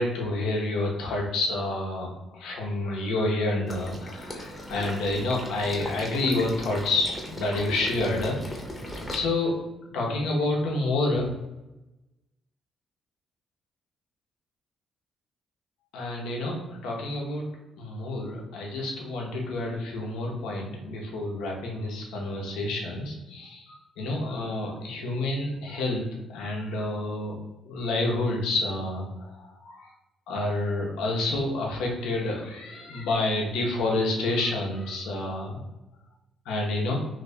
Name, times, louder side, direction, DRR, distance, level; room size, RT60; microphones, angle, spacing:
voice 1, 0.0-8.4 9.1-9.5 9.9-11.3 15.9-17.4 17.8-26.0 26.3-27.4 27.6-29.1 29.4-29.9 30.3-35.6 36.5-37.0, left 2 dB, 90° left, -1 dB, 0.8 m, -28 dB
Water / Liquid, 3.7-9.1, equal, 20° left, 0.8 m, -38 dB
2.8 x 2.7 x 3.3 m, 1.0 s
cardioid pair, 90°, 0 cm